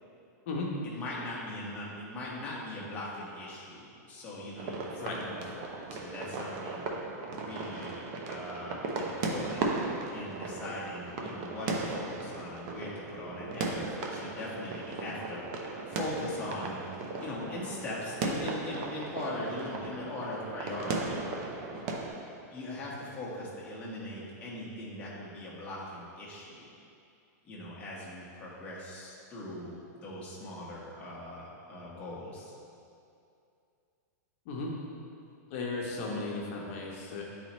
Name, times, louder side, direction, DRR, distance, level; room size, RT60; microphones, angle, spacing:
voice 1, 0.8-4.8 5.1-6.9 7.4-8.0 8.3-9.7 10.1-15.6 15.9-16.8 17.2-21.2 21.9-22.1 22.5-26.7 27.4-32.5, left 1 dB, 15° left, -7 dB, 1.3 m, -40 dB
sound 1, 4.6-22.1, right 3 dB, 35° right, 0.6 m, -36 dB
voice 2, 35.5-37.2, left 3 dB, 50° left, -2 dB, 1.0 m, -35 dB
9.4 x 4.2 x 3.1 m, 2.5 s
supercardioid pair, 160°, 9 cm